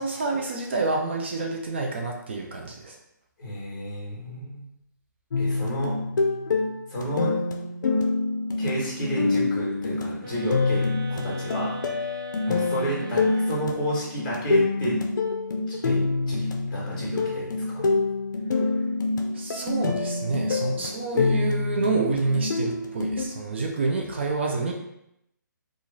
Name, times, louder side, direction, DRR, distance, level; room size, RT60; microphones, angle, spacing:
voice 1, 0.0-3.0 12.4-12.7 18.5-18.6 19.3-24.7, right 3 dB, 35° right, 1 dB, 0.4 m, -28 dB
voice 2, 3.4-4.6 5.4-5.9 6.9-7.3 8.6-11.8 12.5-15.0 15.7-17.8, right 1 dB, 25° left, -6 dB, 1.5 m, -31 dB
sound 1, 5.3-23.3, left 3 dB, 65° left, 0.5 m, -26 dB
sound 2, 10.2-14.1, left 1 dB, 80° right, 1.0 m, -39 dB
3.0 x 2.4 x 3.8 m, 0.80 s
hypercardioid pair, 170°, 11 cm